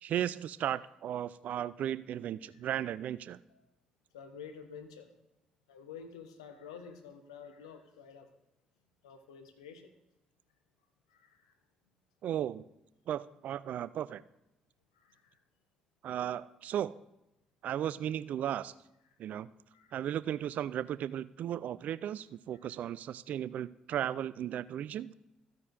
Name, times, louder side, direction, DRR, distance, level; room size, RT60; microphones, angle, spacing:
voice 1, 0.0-3.4 12.2-12.7 13.1-14.2 16.0-16.9 17.6-18.7 19.2-19.5 19.9-25.1, right 10 dB, 55° right, 18 dB, 0.3 m, -35 dB
voice 2, 4.1-5.1 5.7-8.3 9.0-9.9 11.1-11.5 14.9-15.4 19.7-20.0, left 6 dB, 80° left, 6 dB, 0.9 m, -50 dB
14.0 x 9.2 x 2.6 m, 0.89 s
figure-of-eight pair, 45°, 3 cm